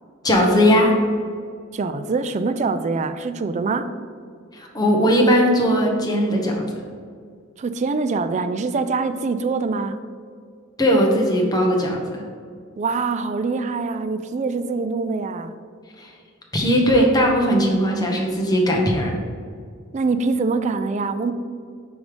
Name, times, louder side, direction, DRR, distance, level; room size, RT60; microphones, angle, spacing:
voice 1, 0.2-0.9 4.5-6.6 10.8-12.2 16.0-16.1 16.5-19.1, equal, 20° left, 0 dB, 0.9 m, -18 dB
voice 2, 1.7-3.9 7.6-10.0 12.8-15.5 19.9-21.3, right 4 dB, 35° right, 10 dB, 0.3 m, -24 dB
5.2 x 4.8 x 5.0 m, 2.1 s
head